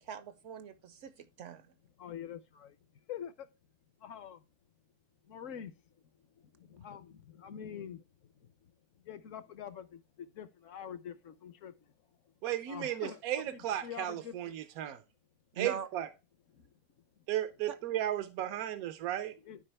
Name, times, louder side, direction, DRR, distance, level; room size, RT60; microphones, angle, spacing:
voice 1, 0.0-1.7 15.5-15.9 17.7-17.8, right 8 dB, 65° right, 0.9 m, -42 dB
voice 2, 2.0-2.7 3.1-3.3 4.0-4.4 5.3-5.7 6.7-8.0 9.1-10.0 10.4-11.7 12.7-13.2 13.5-14.6 19.4-19.6, left 8 dB, 65° left, 1.0 m, -45 dB
voice 3, 12.4-15.0 15.6-16.1 17.3-19.3, right 12 dB, 85° right, 1.2 m, -35 dB
12.0 x 4.7 x 3.3 m
omnidirectional pair, 1.5 m